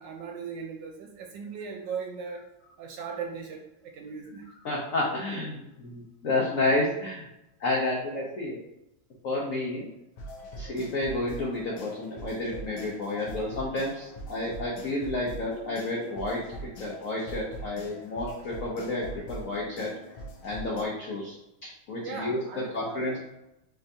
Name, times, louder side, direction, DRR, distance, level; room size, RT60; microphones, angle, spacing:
voice 1, 0.0-2.4 2.8-4.5 22.0-23.2, right 5 dB, 75° right, 2 dB, 1.2 m, -38 dB
voice 2, 4.6-7.3 7.6-8.6 9.2-9.9 10.5-19.9 20.4-21.4 21.9-22.4 22.7-23.2, left 2 dB, 60° left, -3 dB, 0.9 m, -30 dB
sound 1, 10.2-20.8, equal, 85° left, 1.6 m, -42 dB
4.4 x 3.8 x 2.7 m, 0.90 s
omnidirectional pair, 2.1 m